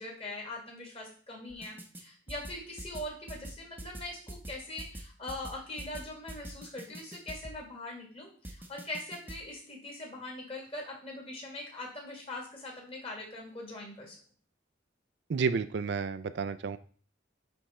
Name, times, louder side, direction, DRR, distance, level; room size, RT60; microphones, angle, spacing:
voice 1, 0.0-14.2, left 1 dB, 30° left, 0 dB, 2.0 m, -42 dB
sound 1, 1.5-2.0 2.3-7.6 8.4-9.4, right 1 dB, 10° right, 0.7 m, -44 dB
voice 2, 15.3-16.8, right 5 dB, 55° right, 13 dB, 0.4 m, -31 dB
10.0 x 3.5 x 4.2 m, 0.43 s
head